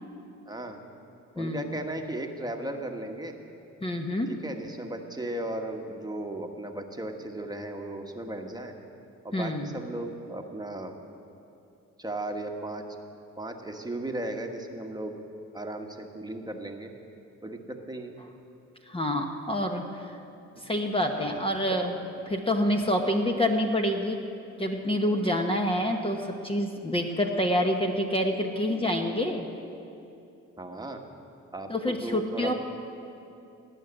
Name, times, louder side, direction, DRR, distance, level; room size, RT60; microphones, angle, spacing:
voice 1, 0.5-0.8 1.3-3.3 4.3-8.8 9.2-11.0 12.0-12.8 13.4-15.2 15.5-16.9 17.4-18.2 21.7-21.8 30.6-31.0 31.5-32.5, right 1 dB, 15° right, 3 dB, 1.2 m, -36 dB
voice 2, 1.4-1.7 3.8-4.3 9.3-9.7 18.9-20.2 20.6-21.9 22.3-24.2 24.6-29.5 31.7-32.5, left 1 dB, 20° left, 2 dB, 1.0 m, -27 dB
17.5 x 6.5 x 9.8 m, 2.7 s
cardioid pair, 90°, 30 cm